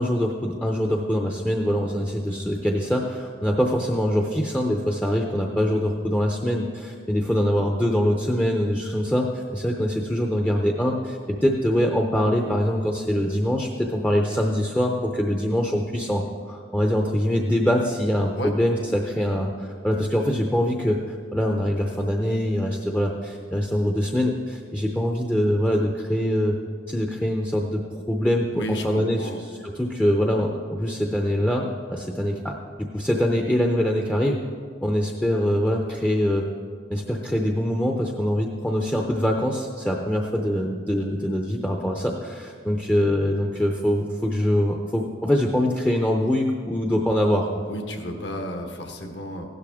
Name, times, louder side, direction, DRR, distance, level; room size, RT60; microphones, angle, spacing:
voice 1, 0.0-26.6 26.9-28.5 28.8-29.3 29.6-32.6 32.9-34.4 34.8-36.5 36.9-47.5, equal, 10° left, 1 dB, 0.6 m, -24 dB
voice 2, 28.5-29.4 47.7-49.5, equal, 65° left, 4 dB, 1.4 m, -32 dB
15.5 x 12.0 x 3.6 m, 2.1 s
head